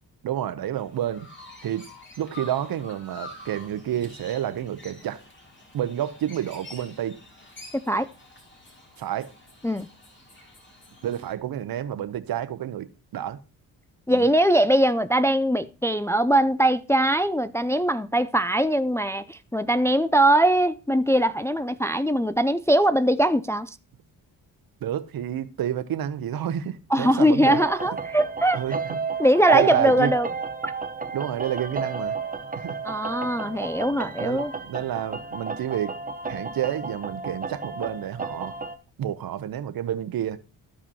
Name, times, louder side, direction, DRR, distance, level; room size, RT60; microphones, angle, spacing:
voice 1, 0.2-1.3 1.6-1.9 2.2-5.2 5.7-7.2 9.0-9.3 11.0-13.4 14.1-14.3 24.8-27.6 28.5-29.0 29.5-30.2 31.1-32.2 32.6-32.8 33.3-33.5 34.2-36.0 36.3-38.5 39.0-40.4, right 11 dB, 65° right, 0.8 m, -29 dB
Chirp tweet, 0.7-11.3, left 1 dB, 30° left, 2.7 m, -47 dB
voice 2, 7.7-8.1 9.6-9.9 14.1-23.8 26.9-28.6 29.2-30.3 32.8-34.5, right 1 dB, 5° left, 0.3 m, -21 dB
sound 1, 27.4-38.8, right 5 dB, 20° right, 0.8 m, -32 dB
14.0 x 4.9 x 2.8 m
cardioid pair, 70°, 39 cm